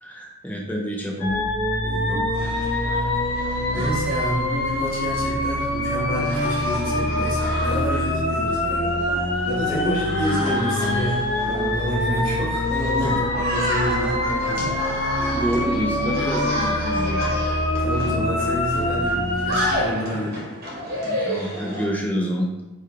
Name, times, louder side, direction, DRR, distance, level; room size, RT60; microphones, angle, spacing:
voice 1, 0.0-1.4 3.6-3.8 9.7-9.9 13.0-13.2 15.3-17.3 21.0-22.5, equal, 10° left, -1 dB, 0.4 m, -27 dB
sound 1, 1.2-19.7, left 1 dB, 85° left, 0.6 m, -24 dB
voice 2, 1.8-2.4 2.8-3.1 3.7-9.1 9.4-14.8 17.8-20.5, left 1 dB, 50° left, -6 dB, 1.3 m, -29 dB
sound 2, 2.3-21.9, equal, 50° right, 1.0 m, -32 dB
3.0 x 2.3 x 3.6 m, 1.0 s
head